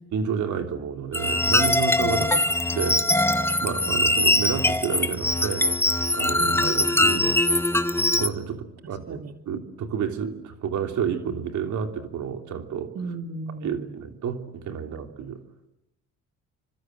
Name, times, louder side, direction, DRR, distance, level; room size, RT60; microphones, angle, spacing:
voice 1, 0.1-2.4 2.7-3.0 3.6-5.7 6.1-7.4 8.2-9.2 9.5-12.9 13.6-15.4, right 7 dB, 75° right, 5 dB, 3.2 m, -30 dB
sound 1, 1.1-8.3, left 1 dB, 10° left, 1.4 m, -22 dB
voice 2, 2.0-2.5 6.4-7.0 8.8-9.3 12.9-13.9, right 3 dB, 55° right, 5 dB, 2.5 m, -36 dB
28.5 x 25.5 x 8.0 m, 0.84 s
cardioid pair, 90°, 30 cm